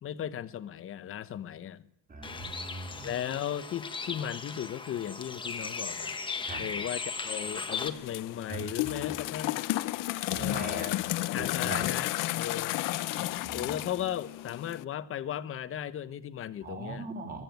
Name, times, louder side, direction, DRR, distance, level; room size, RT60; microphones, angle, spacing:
voice 1, 0.0-1.8 3.0-6.2 6.6-9.6 10.4-10.9 11.3-12.8 13.5-17.1, left 10 dB, 30° left, 14 dB, 1.0 m, -36 dB
voice 2, 2.1-3.1 6.5-6.6 8.5-9.3 10.3-10.9 11.4-11.9 13.4-13.8 16.6-17.4, right 3 dB, 20° right, 3 dB, 4.1 m, -40 dB
Bird, 2.2-7.9, left 4 dB, 10° left, 1.2 m, -37 dB
sound 1, 7.7-14.8, left 17 dB, 50° left, 0.7 m, -32 dB
22.5 x 14.0 x 9.3 m, 0.73 s
cardioid pair, 160°, 40 cm